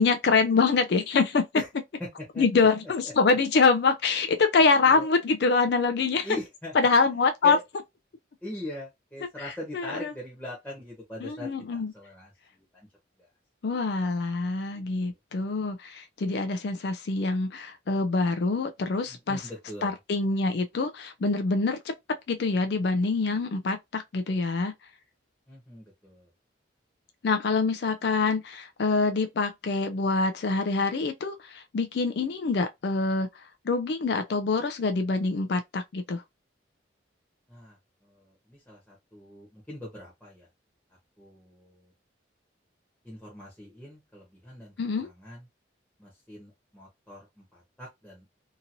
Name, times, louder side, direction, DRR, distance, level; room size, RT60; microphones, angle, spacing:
voice 1, 0.0-1.5 2.4-6.2 6.8-7.6 9.7-10.1 11.2-11.9 13.6-19.4 19.8-21.9 22.3-24.7 27.2-33.3 33.6-36.2 44.8-45.1, left 4 dB, 60° left, 0.4 m, -25 dB
voice 2, 2.3-2.7 4.8-5.1 6.2-6.7 7.4-7.6 8.4-12.9 13.2-13.3 14.7-15.2 19.0-19.9 25.5-26.3 37.5-40.5 41.2-41.9 43.0-44.7 45.0-45.5 46.0-48.3, left 1 dB, 5° left, 1.0 m, -42 dB
2.9 x 2.6 x 2.6 m
head